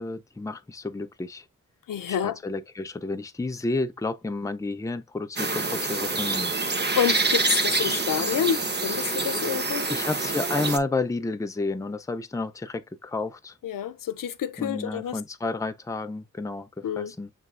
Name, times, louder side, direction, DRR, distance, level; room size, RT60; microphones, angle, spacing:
voice 1, 0.0-1.4 2.1-6.5 9.3-9.5 9.9-13.6 14.6-17.3, left 3 dB, 10° left, 0.4 m, -31 dB
voice 2, 1.9-2.4 6.8-9.9 13.6-15.2 16.8-17.1, left 9 dB, 85° left, 0.5 m, -28 dB
sound 1, 5.4-10.8, right 3 dB, 35° right, 0.8 m, -26 dB
7.2 x 3.1 x 2.4 m
wide cardioid pair, 120°, 32 cm